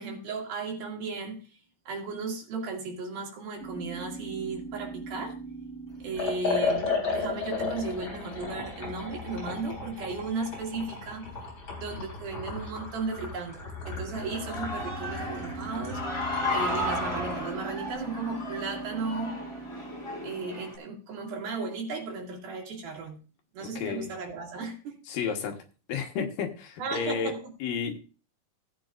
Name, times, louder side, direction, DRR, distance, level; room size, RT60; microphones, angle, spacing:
voice 1, 0.0-1.6 1.9-5.4 6.0-11.3 11.8-16.0 16.5-19.4 20.2-23.2 23.5-25.0 26.8-27.5, right 4 dB, 80° right, 0 dB, 4.2 m, -35 dB
sound 1, 3.6-7.7 13.7-20.7, right 4 dB, 25° right, 2.0 m, -42 dB
Liquid, 6.1-17.4, left 4 dB, 35° left, 4.5 m, -34 dB
Human voice / Cheering, 14.1-20.8, left 1 dB, 15° left, 1.1 m, -34 dB
voice 2, 23.8-24.1 25.1-25.6 25.9-27.3 27.6-28.0, left 6 dB, 70° left, 4 dB, 2.9 m, -31 dB
17.5 x 8.8 x 2.5 m, 0.34 s
omnidirectional pair, 4.2 m